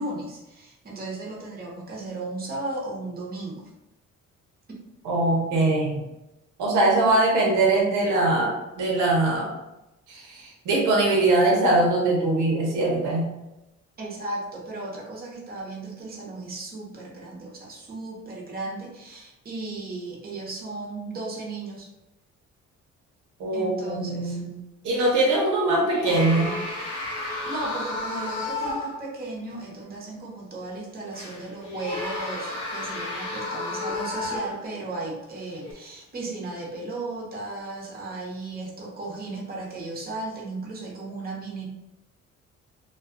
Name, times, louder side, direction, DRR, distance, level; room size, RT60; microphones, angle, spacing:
voice 1, 0.0-3.6 14.0-21.9 23.5-24.4 27.5-41.7, right 2 dB, 30° right, -3 dB, 0.8 m, -35 dB
voice 2, 5.0-6.0 6.6-9.5 10.1-13.3 23.4-24.5 24.8-26.5, right 2 dB, 80° right, -2 dB, 0.8 m, -22 dB
sound 1, 25.0-25.4 25.9-29.1 29.5-29.6 31.1-34.8 35.5-35.7, left 2 dB, 70° left, 1.0 m, -32 dB
2.4 x 2.3 x 2.4 m, 0.95 s
cardioid pair, 90°, 30 cm